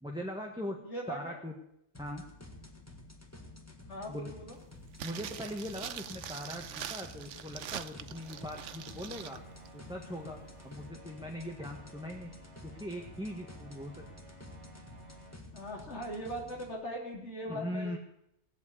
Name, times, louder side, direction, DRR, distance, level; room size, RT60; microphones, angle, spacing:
voice 1, 0.0-0.8 1.1-1.5 2.0-2.2 4.1-4.4 5.0-9.4 9.7-12.3 12.6-14.0 17.5-18.0, equal, 5° right, 1 dB, 1.4 m, -40 dB
voice 2, 0.8-1.4 3.9-4.6 15.5-18.0, equal, 70° left, 0 dB, 3.6 m, -40 dB
sound 1, 1.9-16.7, left 2 dB, 15° left, 1.9 m, -51 dB
sound 2, 4.9-9.4 9.7-9.8, right 9 dB, 85° right, 1.1 m, -43 dB
sound 3, 8.0-15.3, right 2 dB, 65° right, 2.7 m, -55 dB
17.5 x 8.2 x 8.6 m, 0.81 s
omnidirectional pair, 1.2 m